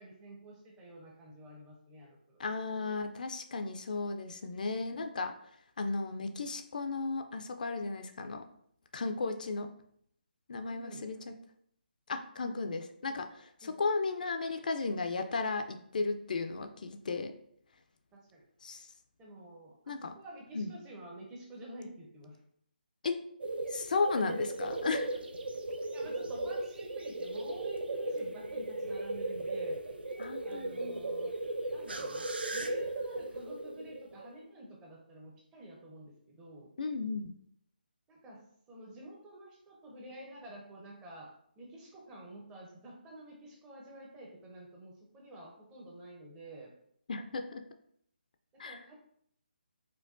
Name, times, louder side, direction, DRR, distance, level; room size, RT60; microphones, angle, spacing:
voice 1, 0.0-2.4 10.6-11.3 13.6-13.7 16.5-16.7 18.1-18.4 19.2-22.4 25.1-25.2 25.9-29.8 30.4-31.3 31.7-36.7 38.1-41.3 41.6-46.7 48.5-49.0, right 1 dB, 10° right, -1 dB, 0.5 m, -49 dB
voice 2, 2.4-5.3 5.8-8.4 8.9-9.7 10.5-11.3 12.1-17.3 18.6-18.9 19.9-20.2 20.5-20.8 23.0-23.2 23.7-25.2 30.2-31.0 36.8-37.3 47.1-47.6 48.6-48.8, left 3 dB, 55° left, 6 dB, 0.4 m, -35 dB
sound 1, 23.4-34.4, right 2 dB, 80° right, 0.4 m, -37 dB
4.4 x 2.2 x 2.4 m, 0.68 s
figure-of-eight pair, 155°, 5 cm